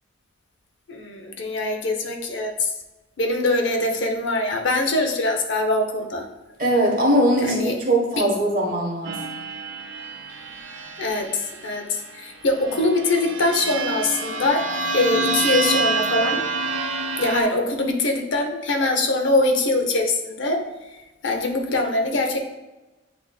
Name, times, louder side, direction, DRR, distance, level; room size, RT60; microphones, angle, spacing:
voice 1, 0.9-2.7 3.2-6.3 7.4-7.7 11.0-14.6 14.9-16.4 17.2-20.6 21.2-22.4, left 2 dB, 65° left, 3 dB, 0.7 m, -23 dB
voice 2, 6.6-9.2, right 1 dB, 45° right, -1 dB, 1.2 m, -20 dB
sound 1, 9.0-11.8 12.6-17.4, right 3 dB, 65° right, 0.6 m, -27 dB
8.4 x 2.8 x 2.2 m, 1.1 s
head